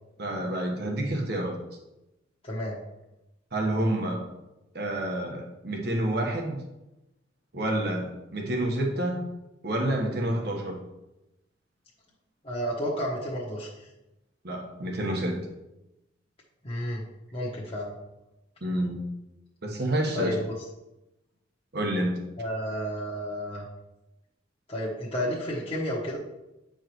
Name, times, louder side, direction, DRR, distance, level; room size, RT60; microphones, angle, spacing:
voice 1, 0.2-1.6 3.5-4.3 4.7-6.6 7.5-9.3 9.6-10.8 14.4-15.5 18.6-19.0 19.6-20.4 21.7-22.2, right 1 dB, 60° right, 1 dB, 1.2 m, -28 dB
voice 2, 2.4-2.8 12.4-13.7 16.6-17.0 17.3-17.9 20.1-20.4 22.4-23.6 24.7-26.2, equal, 30° left, -5 dB, 1.1 m, -31 dB
9.0 x 4.8 x 3.1 m, 0.96 s
head